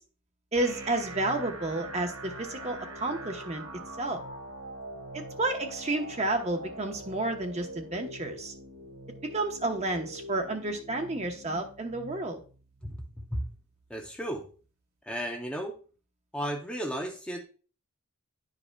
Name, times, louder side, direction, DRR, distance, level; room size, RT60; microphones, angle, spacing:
voice 1, 0.5-3.6 4.0-4.2 5.1-8.5 9.3-12.4, right 2 dB, 30° right, 4 dB, 0.9 m, -31 dB
sound 1, 0.5-14.5, right 1 dB, 85° right, 1.4 m, -44 dB
voice 2, 13.9-14.5 15.0-15.7 16.3-17.4, equal, 5° left, 0 dB, 0.5 m, -34 dB
11.0 x 4.9 x 2.2 m, 0.39 s
head